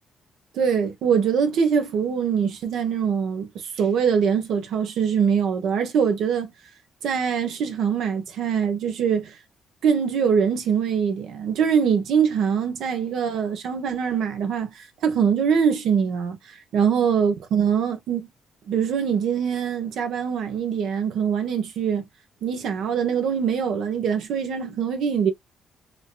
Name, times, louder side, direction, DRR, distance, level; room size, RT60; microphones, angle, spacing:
voice 1, 0.5-3.5 3.8-6.5 7.0-9.3 9.8-18.3 18.7-22.0 22.4-25.3, right 7 dB, 75° right, 1.0 m, -23 dB
4.8 x 2.7 x 2.2 m
cardioid pair, 90°, 0 cm